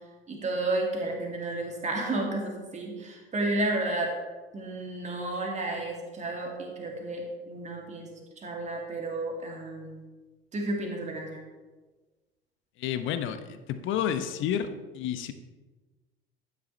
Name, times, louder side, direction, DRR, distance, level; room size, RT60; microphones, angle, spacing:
voice 1, 0.3-4.1 4.5-10.0 10.5-11.4, right 2 dB, 20° right, 0 dB, 2.5 m, -32 dB
voice 2, 12.8-14.7 14.9-15.3, left 9 dB, 40° left, 10 dB, 0.9 m, -30 dB
12.0 x 9.7 x 3.2 m, 1.3 s
figure-of-eight pair, 75°, 31 cm